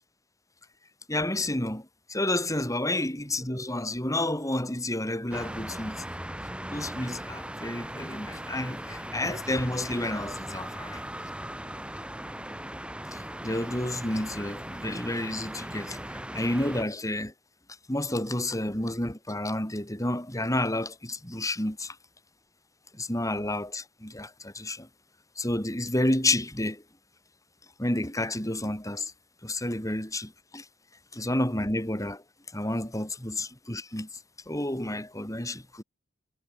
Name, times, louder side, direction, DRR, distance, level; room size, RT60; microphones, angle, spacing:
voice 1, 1.1-6.0 6.7-11.0 13.1-16.0 16.3-17.3 17.9-22.0 22.9-24.9 25.4-26.8 27.8-29.1 29.4-30.7 31.1-32.2 32.5-34.1 34.5-35.8, left 1 dB, 15° left, 7.5 m, -30 dB
sound 1, 5.3-16.8, right 1 dB, 5° right, 3.9 m, -38 dB
head